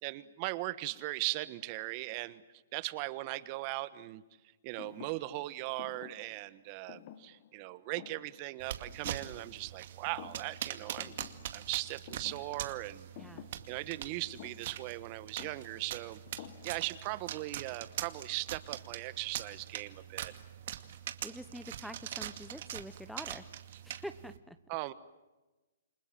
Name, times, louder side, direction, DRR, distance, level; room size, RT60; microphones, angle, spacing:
voice 1, 0.0-2.4 2.7-4.2 4.6-11.1 11.5-13.1 13.7-20.3 24.7-24.9, right 19 dB, 40° right, 16 dB, 1.4 m, -39 dB
Thump thud, 4.8-9.8 10.1-10.7 11.0-17.1, left 11 dB, 45° left, 1.5 m, -53 dB
sound 1, 8.6-24.4, right 11 dB, 55° right, 2.3 m, -43 dB
voice 2, 21.2-23.5 23.8-24.6, equal, ahead, 10 dB, 1.0 m, -45 dB
29.0 x 25.5 x 7.6 m, 1.1 s
hypercardioid pair, 135°, 0 cm